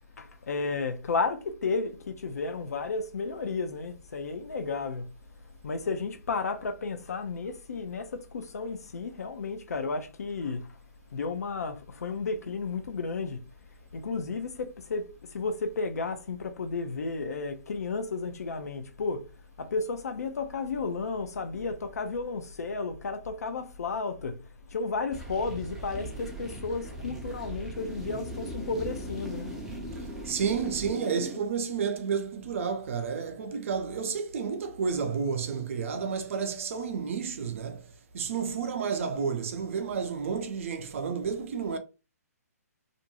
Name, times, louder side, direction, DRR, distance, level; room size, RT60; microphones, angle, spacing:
voice 1, 0.2-5.1 5.6-10.7 11.1-13.4 13.9-19.3 19.6-24.4 24.7-29.5, left 4 dB, 70° left, 0.6 m, -33 dB
sound 1, 25.1-31.4, right 1 dB, 5° right, 0.5 m, -39 dB
voice 2, 30.0-41.8, right 6 dB, 50° right, 0.6 m, -31 dB
2.6 x 2.2 x 2.8 m
hypercardioid pair, 140°, 9 cm